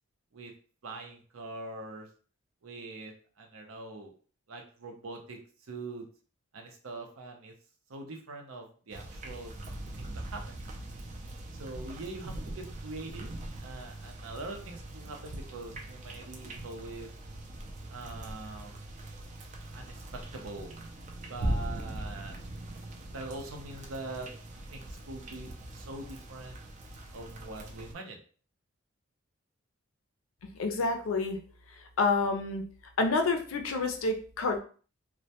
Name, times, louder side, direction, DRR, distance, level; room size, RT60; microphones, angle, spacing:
voice 1, 0.8-2.1 2.6-4.1 4.5-5.4 5.7-6.1 6.5-7.5 7.9-9.5 10.0-10.6 11.6-13.3 13.6-17.1 17.9-18.9 19.7-20.7 21.3-22.3 23.1-24.3 24.7-26.6 27.1-28.2, right 2 dB, 80° right, 3 dB, 0.6 m, -43 dB
sound 1, 8.9-27.9, right 1 dB, 35° right, 0.3 m, -41 dB
voice 2, 30.6-31.4 32.0-32.6 33.0-34.6, left 3 dB, 75° left, 5 dB, 0.4 m, -28 dB
2.1 x 2.1 x 2.7 m, 0.41 s
head